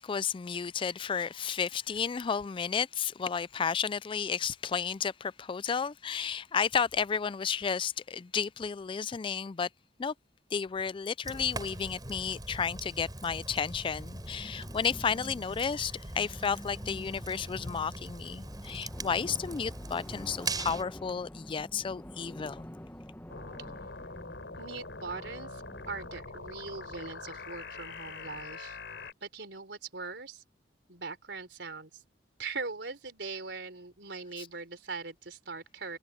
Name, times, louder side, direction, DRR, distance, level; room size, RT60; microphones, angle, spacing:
voice 1, 0.0-9.7 10.0-10.1 10.5-22.7 34.4-34.5, left 6 dB, 30° left, 0.3 m, -32 dB
Fire, 11.2-20.8, right 2 dB, 25° right, 5.4 m, -41 dB
sound 1, 14.1-26.1, left 1 dB, 10° left, 1.0 m, -48 dB
sound 2, 23.3-29.1, left 4 dB, 80° left, 3.4 m, -44 dB
voice 2, 24.6-28.8 29.2-30.4 30.9-32.0 32.4-36.0, right 4 dB, 75° right, 4.4 m, -41 dB
head